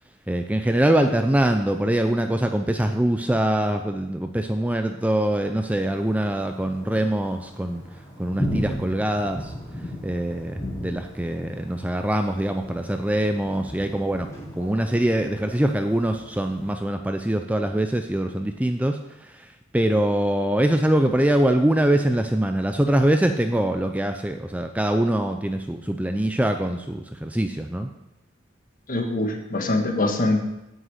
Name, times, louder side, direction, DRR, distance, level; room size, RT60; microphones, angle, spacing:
voice 1, 0.3-7.8 8.2-9.5 10.0-14.3 14.6-19.5 19.7-27.9, right 1 dB, 5° right, 6 dB, 0.4 m, -23 dB
Thunder, 5.8-16.8, equal, 15° left, 2.8 m, -36 dB
voice 2, 28.9-30.4, left 2 dB, 45° left, 3 dB, 1.6 m, -23 dB
9.2 x 6.4 x 8.0 m, 0.92 s
head